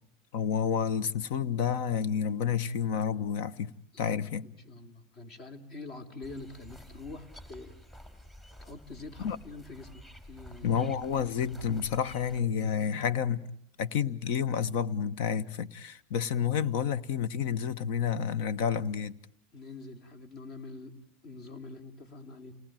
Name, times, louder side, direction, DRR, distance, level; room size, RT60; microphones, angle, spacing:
voice 1, 0.3-3.7 4.0-4.5 9.2-9.4 10.6-13.4 13.8-19.2, left 7 dB, 65° left, 1.1 m, -30 dB
voice 2, 3.9-7.8 8.6-10.8 19.5-21.0 21.2-22.5, left 3 dB, 45° left, 3.1 m, -45 dB
sound 1, 6.2-12.4, equal, 15° left, 3.7 m, -51 dB
29.0 x 19.0 x 9.1 m
supercardioid pair, 130°, 0 cm